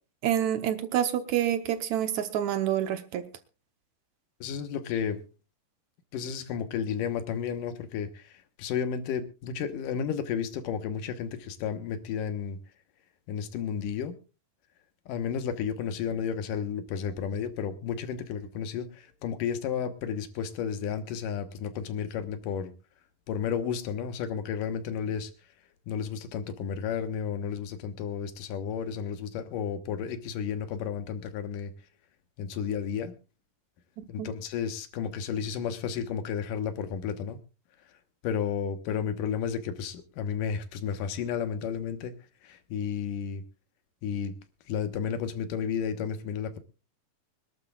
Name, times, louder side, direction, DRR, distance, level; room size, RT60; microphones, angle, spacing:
voice 1, 0.2-3.3 34.0-34.3, right 10 dB, 70° right, 10 dB, 2.0 m, -28 dB
voice 2, 4.4-5.2 6.1-12.6 13.3-14.1 15.1-22.7 23.3-25.3 25.9-31.7 32.4-33.1 34.1-37.4 38.2-42.1 42.4-43.4 44.0-44.3 44.7-46.6, left 7 dB, 75° left, 10 dB, 2.7 m, -32 dB
25.0 x 12.0 x 2.3 m, 0.32 s
omnidirectional pair, 3.9 m